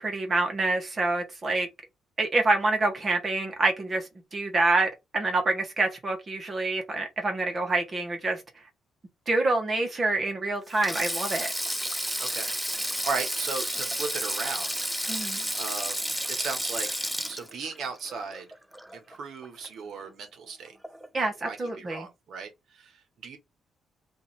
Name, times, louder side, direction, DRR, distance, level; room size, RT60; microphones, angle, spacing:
voice 1, 0.0-1.7 2.2-8.4 9.3-11.5 15.1-15.4 21.1-22.1, right 2 dB, 30° right, 1.3 m, -27 dB
Sink (filling or washing), 10.7-19.2 19.4-19.7 20.8-21.1, equal, 5° right, 0.4 m, -31 dB
voice 2, 12.2-12.5 13.0-14.9 15.6-17.0 17.3-18.5 18.9-20.7 21.2-23.4, right 4 dB, 65° right, 1.2 m, -36 dB
3.0 x 2.7 x 4.1 m
cardioid pair, 135°, 0 cm